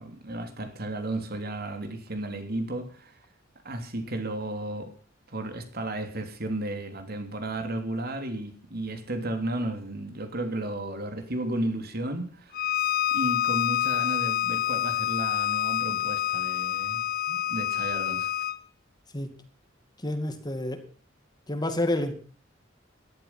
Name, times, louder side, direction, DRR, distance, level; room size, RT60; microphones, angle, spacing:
voice 1, 0.0-3.2 3.6-4.9 5.3-12.6 13.1-18.3, right 1 dB, 50° right, 7 dB, 3.1 m, -33 dB
Bowed string instrument, 12.5-18.6, left 12 dB, 50° left, 0.7 m, -27 dB
voice 2, 20.0-20.8 21.5-22.1, left 1 dB, 20° left, 8 dB, 2.2 m, -29 dB
17.5 x 12.0 x 5.9 m, 0.42 s
head